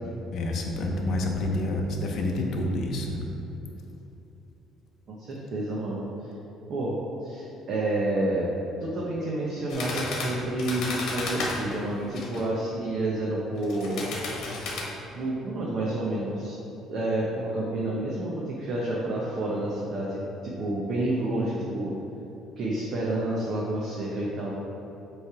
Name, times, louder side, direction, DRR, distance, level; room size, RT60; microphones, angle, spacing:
voice 1, 0.3-3.2, left 1 dB, 50° left, 1 dB, 0.8 m, -28 dB
voice 2, 5.1-6.3 6.7-8.5 8.8-14.0 15.1-16.6 16.9-22.0 22.6-24.5, right 1 dB, 45° right, -4 dB, 0.8 m, -29 dB
sound 1, 9.7-12.4 13.6-14.8, left 3 dB, 65° left, 1.3 m, -33 dB
7.2 x 3.3 x 4.8 m, 3.0 s
cardioid pair, 160°, 0 cm